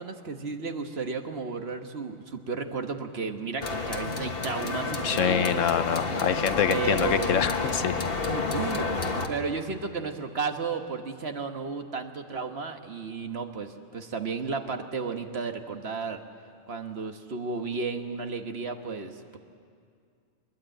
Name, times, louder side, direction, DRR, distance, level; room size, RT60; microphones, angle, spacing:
voice 1, 0.0-5.6 6.7-7.4 8.2-8.9 9.3-16.2 16.7-19.4, right 5 dB, 50° right, 6 dB, 1.5 m, -33 dB
sound 1, 3.6-9.3, left 4 dB, 45° left, 1.5 m, -30 dB
voice 2, 5.0-8.0, left 8 dB, 75° left, 12 dB, 1.1 m, -26 dB
22.0 x 21.0 x 8.9 m, 2.2 s
omnidirectional pair, 1.4 m